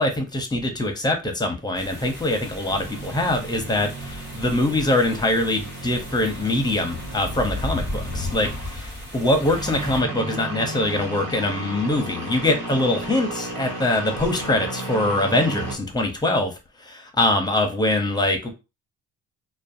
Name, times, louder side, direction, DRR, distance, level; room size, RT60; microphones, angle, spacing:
voice 1, 0.0-16.5 16.8-18.5, left 1 dB, 10° left, 0.6 m, -23 dB
sound 1, 1.7-10.0, left 2 dB, 30° right, 1.2 m, -35 dB
sound 2, 2.7-15.8, right 2 dB, 85° right, 1.2 m, -35 dB
2.5 x 2.2 x 2.5 m
cardioid pair, 95°, 35 cm